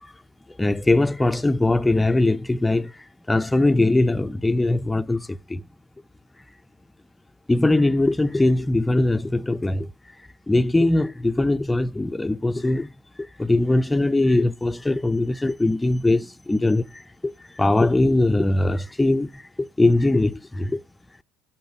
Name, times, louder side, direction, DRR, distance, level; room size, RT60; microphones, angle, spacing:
voice 1, 0.6-2.9 3.3-5.6 7.5-9.9 10.5-12.9 13.4-20.8, left 2 dB, 10° left, 0.6 m, -21 dB
10.0 x 6.0 x 4.5 m
hypercardioid pair, 70°, 0 cm